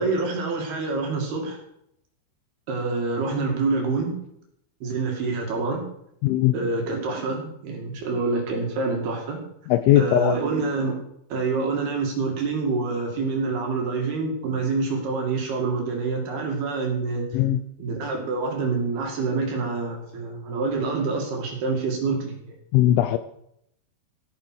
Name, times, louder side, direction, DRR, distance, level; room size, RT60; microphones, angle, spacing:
voice 1, 0.0-1.6 2.7-4.2 4.8-5.8 6.5-9.4 10.0-10.9 11.3-17.3 17.8-22.6, right 3 dB, 55° right, 1 dB, 3.6 m, -26 dB
voice 2, 6.2-6.5 9.7-10.4 17.3-17.6 22.7-23.2, left 13 dB, 80° left, 11 dB, 2.8 m, -19 dB
15.0 x 8.6 x 6.2 m, 0.76 s
omnidirectional pair, 6.0 m